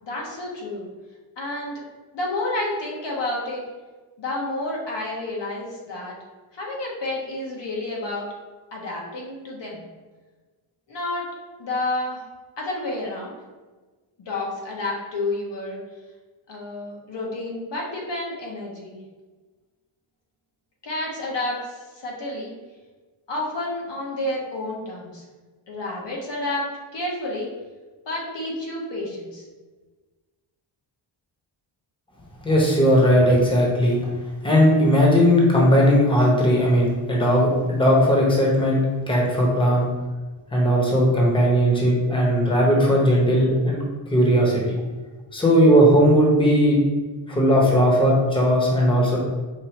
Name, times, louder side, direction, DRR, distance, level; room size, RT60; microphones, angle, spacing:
voice 1, 0.0-0.9 1.4-1.8 2.1-3.6 4.2-6.1 6.5-8.3 8.7-9.8 10.9-11.3 11.6-12.2 12.6-13.3 14.2-15.8 16.5-19.0 20.8-22.5 23.3-25.2 25.7-27.5 28.0-29.4, left 2 dB, 60° left, -3 dB, 1.0 m, -30 dB
voice 2, 32.4-34.0 34.4-39.9 40.5-43.8 44.1-44.8 45.3-46.8 47.3-49.2, equal, 10° left, -3 dB, 1.0 m, -18 dB
4.8 x 2.6 x 2.9 m, 1.3 s
cardioid pair, 85°, 49 cm